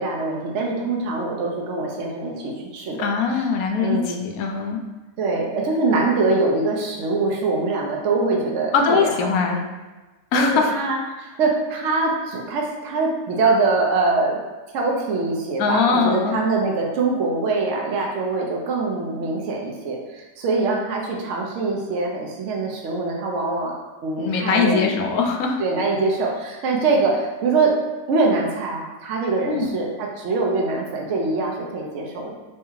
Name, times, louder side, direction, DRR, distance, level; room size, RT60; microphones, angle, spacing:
voice 1, 0.0-3.5 3.8-4.2 5.2-9.1 9.5-9.6 10.3-14.4 14.7-23.8 24.0-25.0 25.6-27.7 28.1-32.3, right 3 dB, 65° right, -1 dB, 0.8 m, -23 dB
voice 2, 3.0-4.8 8.7-9.6 10.3-10.7 15.6-16.4 24.2-25.6 29.4-29.7, left 5 dB, 70° left, 2 dB, 1.0 m, -21 dB
3.5 x 3.2 x 3.1 m, 1.2 s
omnidirectional pair, 1.7 m